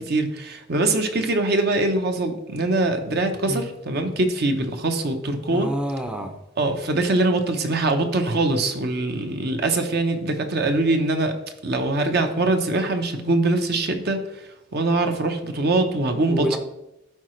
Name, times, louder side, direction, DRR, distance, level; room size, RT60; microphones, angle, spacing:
voice 1, 0.0-5.7 6.6-11.4 11.6-14.2 14.7-16.6, right 2 dB, 55° right, 6 dB, 0.8 m, -23 dB
voice 2, 5.5-6.4 16.3-16.6, right 1 dB, 5° right, 4 dB, 0.6 m, -28 dB
12.0 x 4.8 x 3.2 m, 0.89 s
head